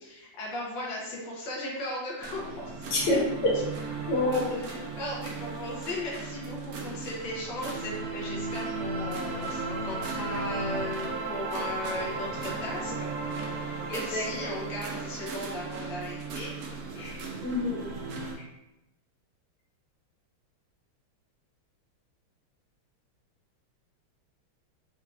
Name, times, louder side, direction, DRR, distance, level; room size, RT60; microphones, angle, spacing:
voice 1, 0.0-3.2 3.5-3.6 4.5-13.1 13.4-16.5 16.9-17.3, left 1 dB, 65° left, -5 dB, 1.6 m, -37 dB
sound 1, 2.2-18.4, right 3 dB, 70° right, 0.8 m, -36 dB
voice 2, 2.9-3.5 4.1-4.6 13.9-14.5 17.4-17.8, left 2 dB, 90° left, -5 dB, 2.2 m, -27 dB
4.6 x 3.7 x 2.4 m, 0.91 s
omnidirectional pair, 2.3 m